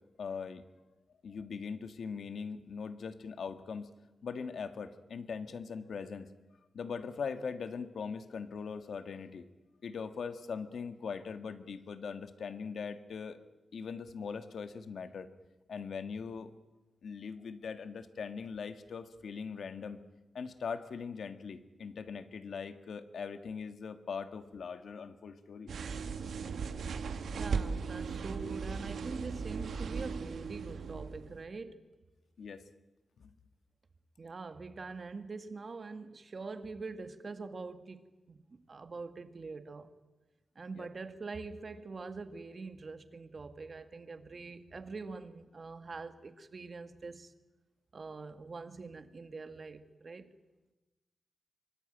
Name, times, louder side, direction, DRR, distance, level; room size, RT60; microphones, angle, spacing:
voice 1, 0.2-0.6 1.2-3.9 4.2-6.3 6.7-9.5 9.8-15.3 15.7-16.5 17.0-20.0 20.3-25.7 32.4-32.6 33.2-33.3 40.7-40.9, left 5 dB, 75° left, 1.7 m, -41 dB
sound 1, 25.7-31.4, right 5 dB, 85° right, 1.9 m, -37 dB
voice 2, 27.3-31.8 34.2-39.9 40.6-47.3 47.9-50.3, right 4 dB, 45° right, 2.0 m, -44 dB
24.0 x 24.0 x 9.2 m
wide cardioid pair, 95°, 0 cm